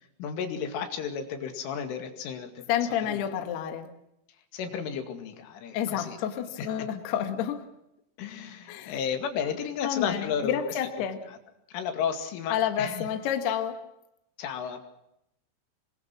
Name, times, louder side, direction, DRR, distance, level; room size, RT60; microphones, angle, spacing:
voice 1, 0.2-2.7 3.0-3.2 4.5-6.2 6.6-6.9 8.2-10.8 11.3-11.4 11.7-13.1 14.4-14.8, left 7 dB, 80° left, 4.7 m, -33 dB
voice 2, 2.7-3.9 5.7-7.7 8.7-8.9 9.8-11.2 12.5-13.9, left 9 dB, 65° left, 3.2 m, -29 dB
27.5 x 21.5 x 6.0 m
omnidirectional pair, 5.6 m